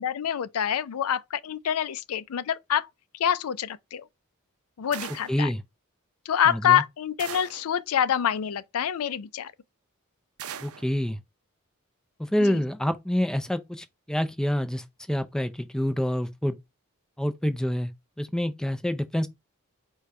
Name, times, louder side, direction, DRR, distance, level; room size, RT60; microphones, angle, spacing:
voice 1, 0.0-2.9 3.2-4.1 4.8-5.5 6.3-9.5 12.4-12.6, left 9 dB, 80° left, 0.4 m, -26 dB
sound 1, 4.9-5.4 7.2-7.7 10.4-10.9, right 9 dB, 80° right, 0.5 m, -39 dB
voice 2, 5.3-5.6 6.5-6.8 10.6-11.2 12.2-16.6 17.2-17.9 18.2-19.3, equal, 5° left, 0.4 m, -27 dB
5.0 x 2.3 x 4.2 m
head